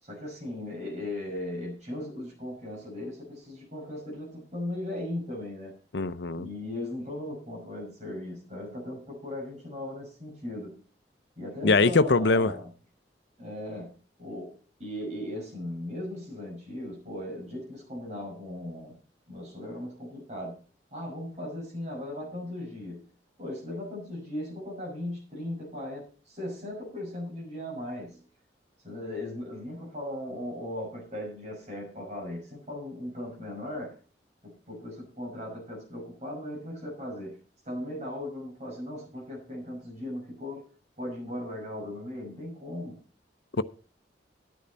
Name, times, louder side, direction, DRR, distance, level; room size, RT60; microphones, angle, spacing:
voice 1, 0.0-5.7 6.4-10.8 11.4-12.7 13.4-19.0 19.3-20.6 20.9-23.0 23.4-28.2 28.8-34.0 34.4-40.7 41.0-43.0, left 1 dB, 40° right, -2 dB, 5.6 m, -38 dB
voice 2, 5.9-6.5 11.6-12.5 43.6-43.7, left 3 dB, 75° left, 13 dB, 0.7 m, -22 dB
13.0 x 10.5 x 4.1 m, 0.39 s
head